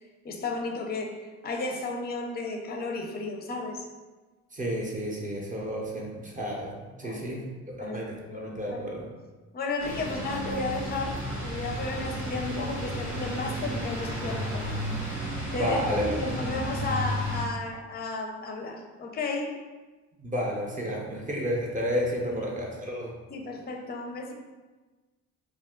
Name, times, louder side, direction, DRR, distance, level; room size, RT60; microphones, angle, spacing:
voice 1, 0.2-3.9 7.0-7.4 7.8-8.0 8.3-9.0 9.5-14.8 15.5-19.6 22.3-22.5 23.3-24.3, left 3 dB, 30° left, 2 dB, 0.5 m, -33 dB
voice 2, 4.5-7.4 7.8-9.1 15.5-16.4 20.2-23.1, equal, 25° right, -2 dB, 0.6 m, -31 dB
sound 1, 9.8-17.4, equal, 85° right, 1.2 m, -33 dB
2.4 x 2.3 x 3.6 m, 1.3 s
cardioid pair, 90°, 30 cm